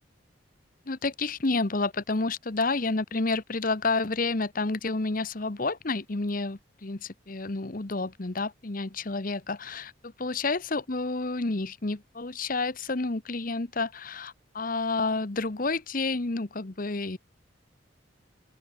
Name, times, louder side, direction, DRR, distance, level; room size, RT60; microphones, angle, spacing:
voice 1, 0.9-17.2, left 3 dB, 45° left, 1.0 m, -30 dB
open air
head